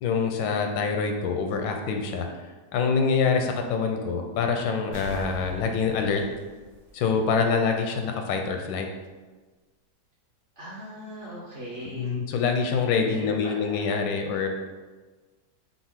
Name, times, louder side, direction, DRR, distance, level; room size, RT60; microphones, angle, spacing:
voice 1, 0.0-2.3 2.7-6.2 6.9-8.9 11.9-14.5, left 5 dB, 85° left, 4 dB, 1.3 m, -25 dB
sound 1, 4.9-7.5 7.9-8.0, right 1 dB, 90° right, 1.9 m, -42 dB
voice 2, 10.6-12.1 13.1-14.1, equal, 50° right, -6 dB, 0.9 m, -40 dB
6.0 x 2.1 x 3.6 m, 1.3 s
omnidirectional pair, 2.0 m